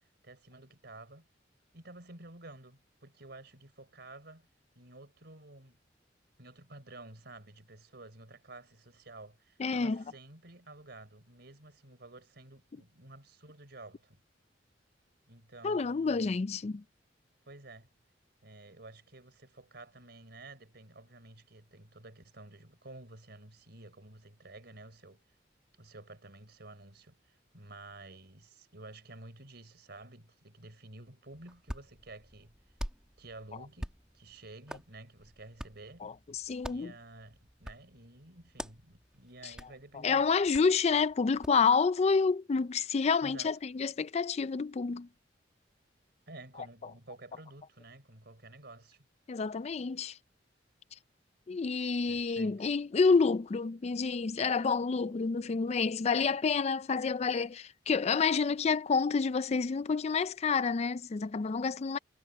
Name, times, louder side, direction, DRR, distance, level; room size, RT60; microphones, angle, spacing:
voice 1, 0.2-1.3 1.7-4.5 4.7-5.8 6.4-14.2 15.3-16.3 17.5-17.9 18.4-25.2 25.8-32.5 33.2-36.0 36.6-40.3 43.2-43.5 46.3-49.0 52.1-52.7, right 2 dB, 65° right, 4.5 m, -51 dB
voice 2, 9.6-10.0 15.6-16.8 36.0-36.9 40.0-45.1 49.3-50.2 51.5-62.0, left 5 dB, 35° left, 0.4 m, -29 dB
Hands, 31.3-41.7, equal, 5° right, 1.8 m, -47 dB
head